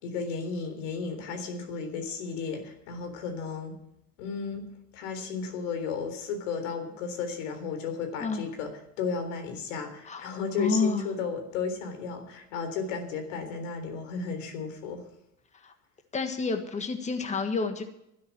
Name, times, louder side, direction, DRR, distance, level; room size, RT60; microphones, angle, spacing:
voice 1, 0.0-3.7 4.2-4.7 4.9-8.7 9.0-15.0, left 5 dB, 85° left, 6 dB, 3.8 m, -34 dB
voice 2, 10.6-11.1 15.6-15.7 16.1-17.8, left 4 dB, 20° left, 6 dB, 1.6 m, -29 dB
12.5 x 10.0 x 7.4 m, 0.81 s
supercardioid pair, 105°, 36 cm